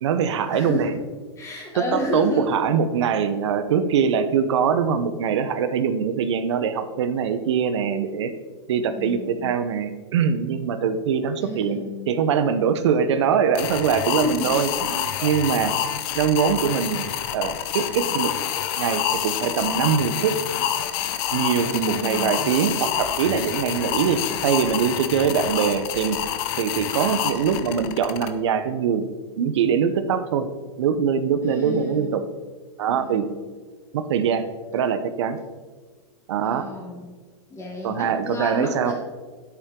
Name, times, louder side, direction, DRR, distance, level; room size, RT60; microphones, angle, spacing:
voice 1, 0.0-0.9 1.7-8.3 8.7-15.7 16.1-17.1 17.3-18.3 18.8-20.4 21.3-26.2 26.6-29.1 29.4-30.5 30.8-32.2 32.8-33.2 33.9-34.4 34.7-35.4 36.3-36.7 37.8-38.9, right 7 dB, 70° right, 11 dB, 1.0 m, -23 dB
voice 2, 0.5-1.0 1.4-2.6 8.8-9.6 11.4-12.1 14.1-14.6 21.6-22.4 31.4-32.3 32.8-33.4 36.4-37.1 37.5-38.9, left 1 dB, 20° left, -1 dB, 3.0 m, -31 dB
sound 1, 13.5-28.3, left 10 dB, 50° left, 0.9 m, -27 dB
9.7 x 8.5 x 3.8 m, 1.4 s
hypercardioid pair, 120°, 15 cm